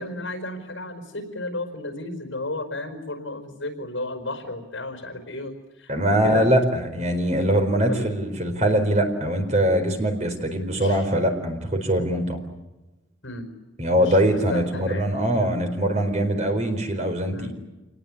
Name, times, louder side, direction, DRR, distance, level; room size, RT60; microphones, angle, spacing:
voice 1, 0.0-6.5 7.9-8.1 10.7-11.1 13.2-13.5 13.9-15.1 15.4-15.5 17.3-17.5, left 2 dB, 70° left, 8 dB, 4.8 m, -33 dB
voice 2, 5.9-12.4 13.8-17.5, equal, 35° right, 5 dB, 4.3 m, -22 dB
27.5 x 19.5 x 9.9 m, 1.1 s
head